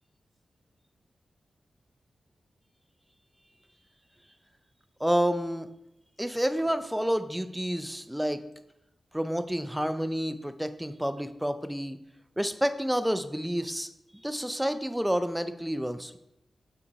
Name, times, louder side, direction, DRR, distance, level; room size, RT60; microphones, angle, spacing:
voice 1, 5.0-5.7 6.2-8.4 9.1-12.0 12.4-13.9 14.2-16.2, equal, 5° right, 10 dB, 0.5 m, -29 dB
5.9 x 3.9 x 4.7 m, 0.83 s
cardioid pair, 55°, 0 cm